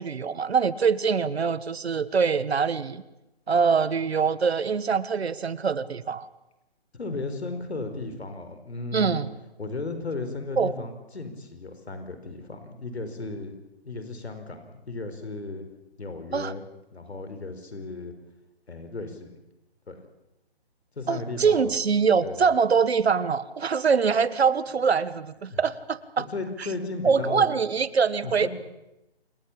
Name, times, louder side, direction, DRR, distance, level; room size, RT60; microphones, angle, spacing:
voice 1, 0.0-3.0 3.5-6.3 8.9-9.3 10.6-10.7 16.3-16.5 21.1-26.2 27.0-28.5, right 6 dB, 75° right, 16 dB, 1.4 m, -24 dB
voice 2, 6.9-9.2 9.6-13.5 13.8-15.6 16.0-16.6 16.9-18.1 18.7-19.3 19.9-20.0 20.9-21.7 22.2-22.5 25.5-25.6 26.3-27.5 28.2-28.5, left 3 dB, 85° left, 8 dB, 4.7 m, -35 dB
27.5 x 16.5 x 8.7 m, 0.94 s
hypercardioid pair, 150°, 32 cm